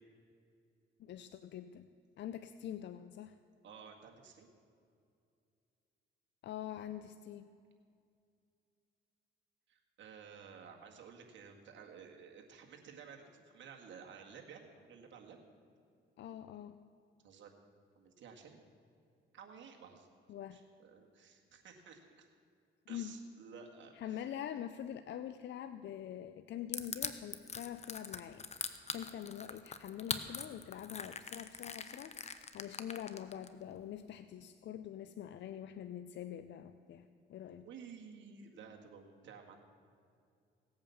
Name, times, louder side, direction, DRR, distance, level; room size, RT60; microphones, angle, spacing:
voice 1, 1.0-1.9 2.2-3.4 6.4-7.5 16.2-16.8 20.3-20.6 22.9-23.2 24.0-37.6, left 10 dB, 65° left, 10 dB, 0.6 m, -45 dB
voice 2, 3.6-4.5 9.7-15.4 17.2-17.5 18.0-18.6 19.3-20.1 20.5-22.3 22.9-24.3 37.6-39.6, right 6 dB, 70° right, 1 dB, 1.9 m, -54 dB
Crushing, 26.7-33.5, left 5 dB, 35° left, 1.0 m, -41 dB
17.0 x 8.7 x 7.0 m, 2.4 s
cardioid pair, 90°, 20 cm